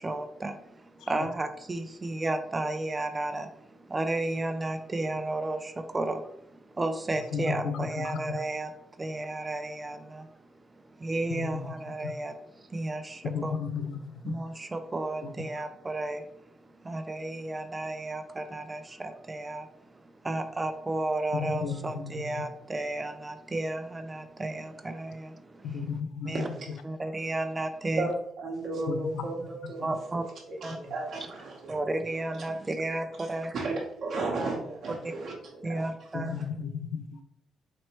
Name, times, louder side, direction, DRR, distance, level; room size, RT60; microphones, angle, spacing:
voice 1, 0.0-10.4 10.7-13.6 14.0-26.5 26.8-28.1 29.8-30.2 30.6-30.8 31.7-33.6 35.6-36.5, right 2 dB, 25° right, 8 dB, 0.4 m, -33 dB
voice 2, 7.3-8.1 11.4-11.7 13.3-14.0 14.3-14.4 21.3-22.2 25.6-26.3 28.9-29.2 36.1-37.2, left 6 dB, 80° left, 9 dB, 0.4 m, -33 dB
voice 3, 26.3-26.7 28.0-28.1 28.4-29.9 30.1-31.7 33.5-33.7 34.0-35.9, right 3 dB, 60° right, -2 dB, 1.0 m, -34 dB
4.2 x 3.1 x 3.0 m, 0.72 s
cardioid pair, 90°, 0 cm